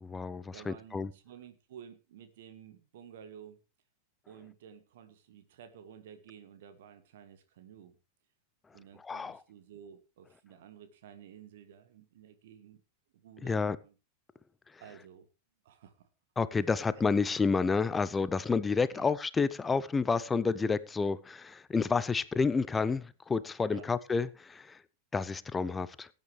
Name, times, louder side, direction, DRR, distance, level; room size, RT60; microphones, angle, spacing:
voice 1, 0.0-1.1 9.0-9.4 13.4-13.8 16.4-24.8 25.1-26.1, left 4 dB, 15° left, 0.6 m, -30 dB
voice 2, 0.5-3.6 4.3-8.0 8.7-12.8 13.1-13.9 14.8-15.3 15.6-16.1 18.9-19.1 23.7-23.9, right 8 dB, 55° right, 1.6 m, -52 dB
19.0 x 9.2 x 3.3 m
figure-of-eight pair, 90°, 0 cm